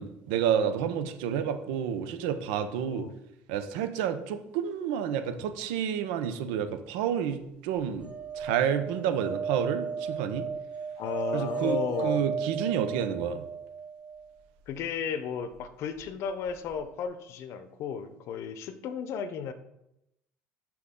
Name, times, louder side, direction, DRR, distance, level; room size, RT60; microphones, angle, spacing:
voice 1, 0.0-3.1 3.5-8.1 8.3-10.5 11.3-13.4, right 8 dB, 85° right, 9 dB, 0.8 m, -30 dB
sound 1, 8.0-14.2 16.5-16.6 16.7-16.8, right 6 dB, 20° right, 2.3 m, -34 dB
voice 2, 11.0-12.2 14.7-19.5, left 7 dB, 65° left, 11 dB, 0.7 m, -34 dB
6.1 x 6.0 x 3.7 m, 0.83 s
supercardioid pair, 80°, 5 cm